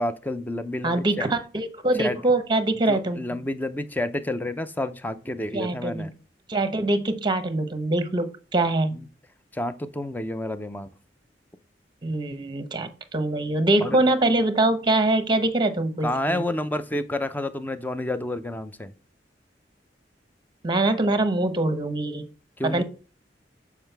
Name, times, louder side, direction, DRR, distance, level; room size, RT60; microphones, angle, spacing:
voice 1, 0.0-1.3 2.0-2.2 2.9-6.1 8.9-9.0 9.5-10.9 13.8-14.0 16.0-18.9 22.6-22.8, left 1 dB, 10° left, 0.5 m, -29 dB
voice 2, 0.8-3.4 5.5-6.1 6.5-9.0 12.0-16.4 20.6-22.3 22.6-22.8, right 2 dB, 25° right, 0.8 m, -24 dB
7.6 x 4.7 x 3.3 m
head